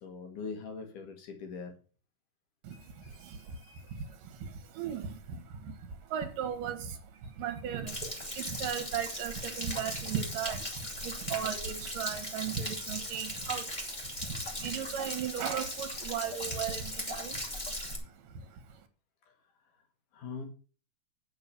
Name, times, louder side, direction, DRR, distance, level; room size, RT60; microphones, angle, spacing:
voice 1, 0.0-1.7 2.7-4.1 20.1-20.5, left 5 dB, 70° left, 4 dB, 3.5 m, -43 dB
voice 2, 2.6-3.6 3.9-8.1 8.4-13.7 14.2-17.4 17.9-18.6, right 8 dB, 85° right, 8 dB, 3.2 m, -37 dB
Stream / Splash splatter / Trickle dribble, 7.9-18.0, left 1 dB, 15° left, 2.5 m, -38 dB
9.1 x 7.4 x 7.0 m, 0.39 s
omnidirectional pair, 3.8 m